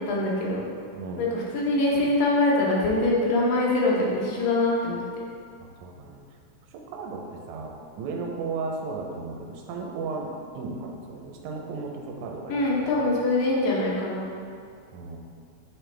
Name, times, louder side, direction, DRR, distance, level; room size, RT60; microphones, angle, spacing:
voice 1, 0.1-0.7 1.2-5.0 12.5-14.3, left 2 dB, 80° left, -4 dB, 2.7 m, -23 dB
voice 2, 0.9-1.2 5.6-6.2 6.7-13.2 14.9-15.2, right 4 dB, 75° right, 0 dB, 1.9 m, -35 dB
7.9 x 4.2 x 3.3 m, 2.2 s
omnidirectional pair, 4.0 m